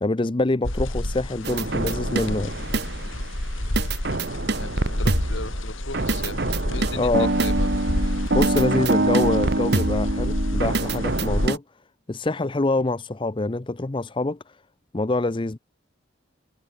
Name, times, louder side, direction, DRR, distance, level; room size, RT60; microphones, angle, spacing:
voice 1, 0.0-2.5 7.0-7.3 8.3-11.6 12.1-14.4 14.9-15.6, left 2 dB, 25° left, 0.6 m, -25 dB
sound 1, 0.6-11.5, left 1 dB, 85° left, 4.1 m, -29 dB
sound 2, 1.4-3.2 3.8-5.5 5.9-11.6, right 2 dB, 55° right, 1.5 m, -25 dB
voice 2, 4.6-7.7, left 3 dB, 65° left, 3.9 m, -38 dB
head